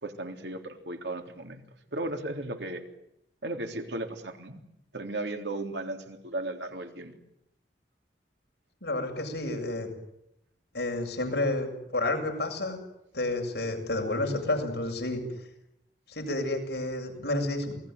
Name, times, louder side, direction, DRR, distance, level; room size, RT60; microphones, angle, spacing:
voice 1, 0.0-1.6 1.9-2.8 3.4-4.6 4.9-7.1, right 2 dB, 75° right, 5 dB, 3.6 m, -35 dB
voice 2, 8.8-9.9 10.7-12.8 13.1-15.2 16.1-17.8, left 2 dB, 65° left, 3 dB, 7.7 m, -30 dB
28.5 x 20.0 x 9.6 m, 0.82 s
head